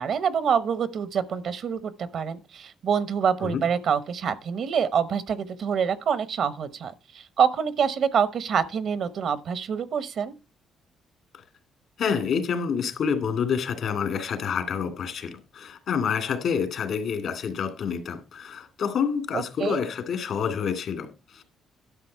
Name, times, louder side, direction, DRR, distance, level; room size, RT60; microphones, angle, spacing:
voice 1, 0.0-10.3 19.3-19.8, right 7 dB, 65° right, 0.9 m, -26 dB
voice 2, 12.0-21.4, left 6 dB, 70° left, 2.2 m, -28 dB
11.5 x 6.2 x 4.5 m
cardioid pair, 90°, 0 cm